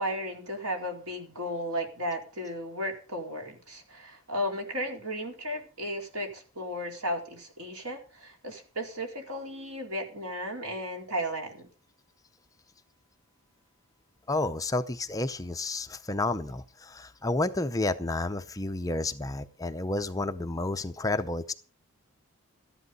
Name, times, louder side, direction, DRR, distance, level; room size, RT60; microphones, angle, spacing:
voice 1, 0.0-11.7, equal, 80° right, 2 dB, 4.3 m, -34 dB
voice 2, 14.3-21.5, left 2 dB, 15° left, 9 dB, 0.6 m, -30 dB
13.5 x 10.5 x 5.4 m, 0.36 s
head